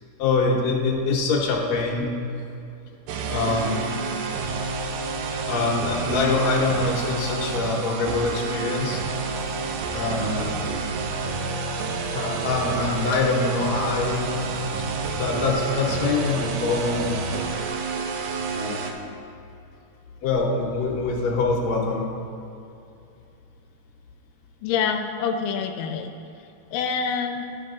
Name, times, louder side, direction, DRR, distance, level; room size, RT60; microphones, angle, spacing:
voice 1, 0.2-2.1 3.3-3.8 5.5-9.0 9.9-10.7 12.1-14.3 15.1-17.2 18.5-18.9 20.2-22.0, left 3 dB, 65° left, -2 dB, 2.1 m, -24 dB
sound 1, 3.1-18.9, right 4 dB, 75° right, 1.8 m, -29 dB
voice 2, 24.6-26.1 26.7-27.5, left 6 dB, 90° left, 6 dB, 2.2 m, -26 dB
12.0 x 5.9 x 3.7 m, 2.6 s
omnidirectional pair, 3.8 m